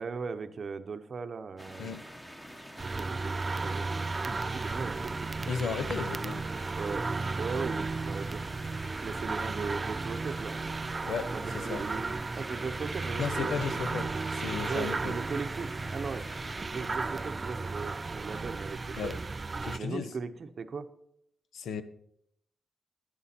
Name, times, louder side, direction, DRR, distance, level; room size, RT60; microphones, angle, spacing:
voice 1, 0.0-2.0 2.8-5.4 6.8-7.1 7.4-8.5 9.0-10.6 11.3-13.8 14.7-16.2 16.7-19.1 19.8-20.9, right 5 dB, 40° right, 0.7 m, -38 dB
sound 1, 1.6-16.7, equal, 5° left, 1.0 m, -47 dB
sound 2, 2.8-19.8, right 3 dB, 25° right, 0.3 m, -34 dB
voice 2, 5.5-6.4 11.1-11.8 13.2-15.2 19.0-19.2 19.6-20.1 21.5-21.8, left 6 dB, 75° left, 0.9 m, -35 dB
11.0 x 10.5 x 4.3 m
wide cardioid pair, 165°, 0 cm